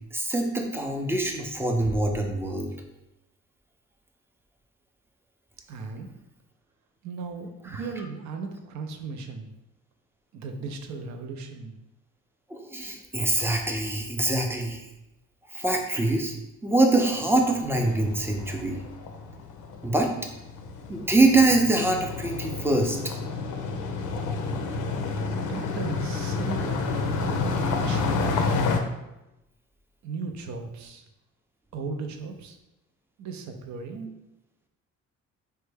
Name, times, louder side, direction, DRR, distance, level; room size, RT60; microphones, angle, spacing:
voice 1, 0.1-2.7 7.6-7.9 12.5-14.9 15.5-16.3 16.6-18.8 19.8-20.1 20.9-23.0, right 2 dB, 10° right, 3 dB, 0.4 m, -24 dB
voice 2, 5.7-6.1 7.0-9.5 10.3-11.8 25.2-26.9 27.2-28.5 30.0-31.0 31.7-32.6 33.2-34.1, right 4 dB, 70° right, 5 dB, 0.5 m, -36 dB
sound 1, 17.7-28.8, left 4 dB, 90° left, 0.5 m, -30 dB
3.2 x 2.2 x 3.2 m, 0.92 s
cardioid pair, 90°, 30 cm